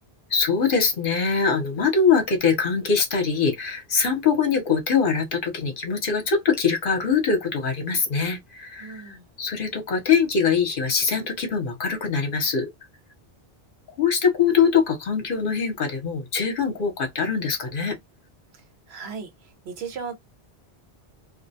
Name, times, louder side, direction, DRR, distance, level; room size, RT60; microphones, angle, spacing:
voice 1, 0.3-12.7 14.0-18.0, left 5 dB, 60° left, 0.9 m, -23 dB
voice 2, 8.8-9.2 18.5-20.1, right 6 dB, 85° right, 1.0 m, -37 dB
2.4 x 2.1 x 2.6 m
omnidirectional pair, 1.1 m